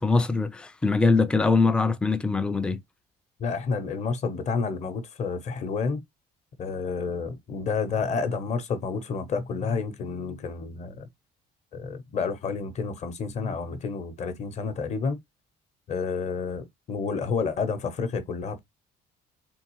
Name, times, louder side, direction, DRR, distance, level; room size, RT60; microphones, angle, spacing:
voice 1, 0.0-2.8, left 3 dB, 5° left, 0.3 m, -22 dB
voice 2, 3.4-6.0 6.6-11.1 11.7-15.2 15.9-18.6, left 5 dB, 40° left, 0.8 m, -30 dB
3.5 x 3.3 x 3.0 m
cardioid pair, 160°, 18 cm